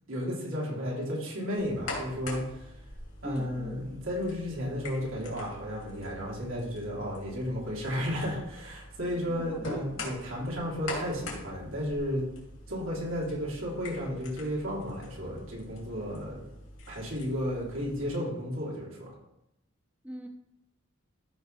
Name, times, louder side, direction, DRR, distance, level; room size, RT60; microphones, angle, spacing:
voice 1, 0.1-2.7 3.2-12.2 12.7-16.4 16.9-19.1, equal, 85° right, -5 dB, 3.4 m, -33 dB
sound 1, 1.6-18.1, left 2 dB, 85° left, 2.8 m, -44 dB
voice 2, 3.2-3.9 9.1-9.7 20.0-20.3, equal, 5° right, 5 dB, 0.5 m, -41 dB
14.0 x 5.6 x 3.4 m, 0.84 s
head